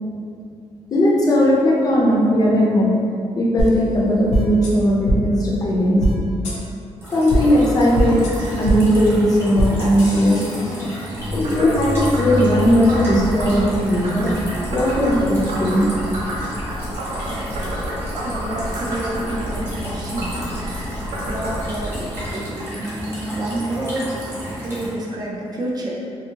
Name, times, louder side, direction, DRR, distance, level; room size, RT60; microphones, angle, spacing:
voice 1, 0.9-2.9 3.4-6.0 7.1-10.5 11.3-14.4 14.7-15.9, equal, 35° left, -4 dB, 0.4 m, -18 dB
sound 1, 3.6-3.7 4.3-4.7 5.1-5.2 6.0-6.1 6.4-6.6 7.3-7.4 7.9-8.3 8.6-8.8 9.6-9.7 10.0-11.0, right 1 dB, 90° left, 0.5 m, -21 dB
sound 2, 7.0-24.9, equal, 20° right, 0.9 m, -32 dB
Frog, 11.1-22.3, equal, 85° right, 0.5 m, -28 dB
voice 2, 17.3-17.8 18.1-21.0 21.3-24.1 24.6-26.0, right 1 dB, 35° right, -3 dB, 0.4 m, -29 dB
2.6 x 2.5 x 2.8 m, 2.5 s
wide cardioid pair, 175°, 11 cm